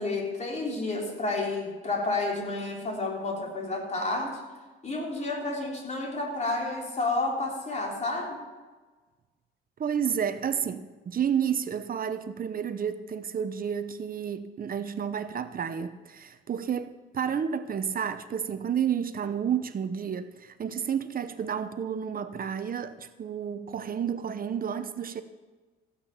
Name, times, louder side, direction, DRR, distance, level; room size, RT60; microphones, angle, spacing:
voice 1, 0.0-4.4 4.8-8.4, left 2 dB, 35° left, 3.6 m, -30 dB
voice 2, 9.8-25.2, right 8 dB, 45° right, 0.9 m, -31 dB
15.5 x 8.6 x 5.8 m
cardioid pair, 90°, 20 cm